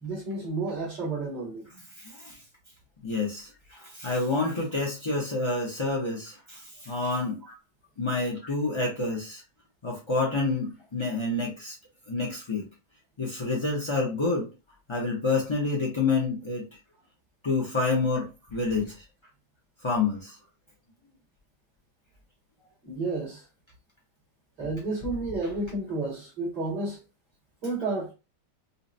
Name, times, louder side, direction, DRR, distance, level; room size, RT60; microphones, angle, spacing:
voice 1, 0.0-1.6 7.5-7.6 22.8-23.4 24.6-27.0 27.6-28.1, right 3 dB, 65° right, 2.7 m, -31 dB
voice 2, 2.0-2.4 3.0-7.4 8.0-9.4 9.8-11.8 12.1-12.6 13.2-14.5 14.9-16.7 17.4-19.0 19.8-20.4, left 3 dB, 40° left, 0.4 m, -28 dB
5.5 x 2.1 x 2.6 m
omnidirectional pair, 1.9 m